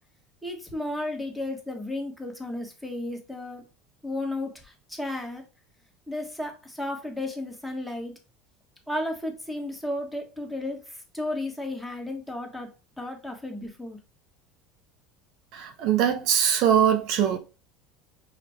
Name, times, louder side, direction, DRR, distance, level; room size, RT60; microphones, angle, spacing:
voice 1, 0.4-3.6 4.0-5.4 6.1-8.1 8.9-12.7 13.0-14.0, left 1 dB, ahead, 1.3 m, -33 dB
voice 2, 15.5-17.4, right 9 dB, 65° right, 0.8 m, -22 dB
5.8 x 2.5 x 3.4 m
supercardioid pair, 115°, 0 cm